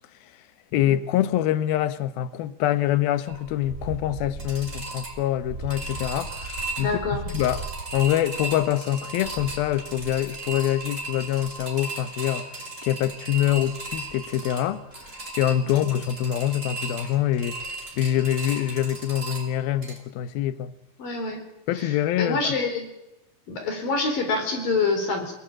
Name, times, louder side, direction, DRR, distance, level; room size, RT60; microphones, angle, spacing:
voice 1, 0.7-14.8 15.1-17.6 18.0-20.7 21.7-22.5, left 12 dB, 70° left, 2.5 m, -25 dB
sound 1, 3.3-20.0, right 2 dB, 15° right, 4.6 m, -36 dB
voice 2, 6.8-7.3 15.7-15.8 21.0-21.4 21.7-22.9 23.5-25.3, left 3 dB, 50° left, 5.9 m, -27 dB
27.5 x 19.0 x 8.8 m
omnidirectional pair, 5.1 m